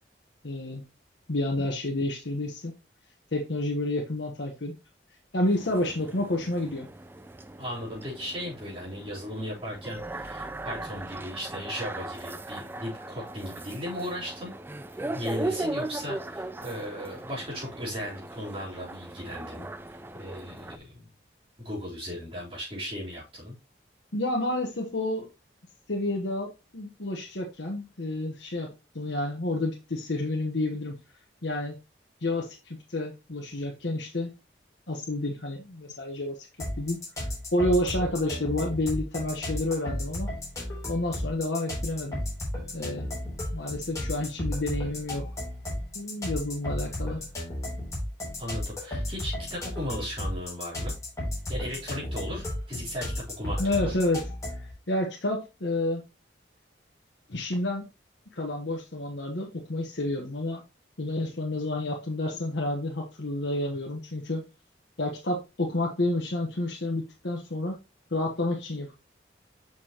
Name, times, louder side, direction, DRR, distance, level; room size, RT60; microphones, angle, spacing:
voice 1, 0.4-0.8 1.3-2.7 3.3-4.7 5.3-6.9 24.1-25.3 25.9-30.9 31.4-31.8 32.2-34.3 34.9-36.4 36.8-40.3 40.9-42.2 42.7-43.1 43.5-45.2 45.9-47.2 53.6-54.2 54.6-56.0 57.3-57.9 58.3-60.6 61.0-64.4 65.0-67.8 68.1-68.9, left 1 dB, 70° left, 0 dB, 1.2 m, -30 dB
sound 1, 5.5-20.8, right 2 dB, 10° right, 0.3 m, -38 dB
voice 2, 7.6-14.5 14.9-21.1 21.6-23.6 48.4-50.9 51.5-54.0, equal, 30° right, -6 dB, 3.6 m, -37 dB
sound 2, 36.6-54.7, left 1 dB, 15° left, 3.2 m, -34 dB
6.8 x 6.0 x 2.9 m, 0.27 s
head